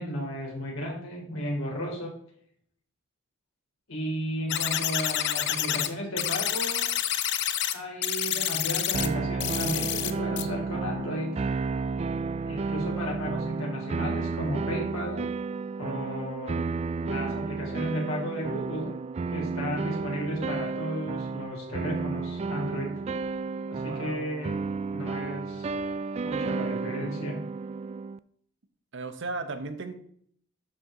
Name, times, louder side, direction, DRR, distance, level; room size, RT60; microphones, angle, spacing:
voice 1, 0.0-2.1 3.9-6.9 7.7-11.4 12.4-15.3 15.8-16.7 17.0-18.9 19.3-22.9 23.7-24.6 24.9-25.7 26.2-27.4, equal, 70° left, -2 dB, 3.5 m, -34 dB
sound 1, 4.5-5.9 6.2-7.7 8.0-9.1 9.4-10.1 10.4-10.5, left 11 dB, 55° left, 0.7 m, -28 dB
sound 2, 8.9-28.2, right 4 dB, 30° right, 0.3 m, -32 dB
voice 2, 23.8-24.2 28.9-29.9, right 3 dB, 60° right, 8 dB, 1.0 m, -36 dB
12.0 x 4.5 x 3.8 m, 0.62 s
head